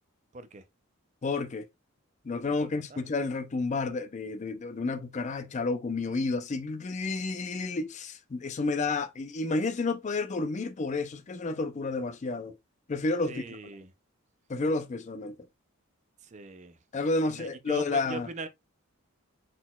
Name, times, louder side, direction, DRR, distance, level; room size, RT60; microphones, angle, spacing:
voice 1, 0.3-0.6 2.4-3.0 13.3-13.9 16.2-16.8 17.2-18.5, right 3 dB, 35° right, 0.4 m, -41 dB
voice 2, 1.2-1.7 2.2-12.5 12.9-13.6 14.5-15.4 16.9-18.3, left 3 dB, 35° left, 0.4 m, -31 dB
4.3 x 3.9 x 2.2 m
head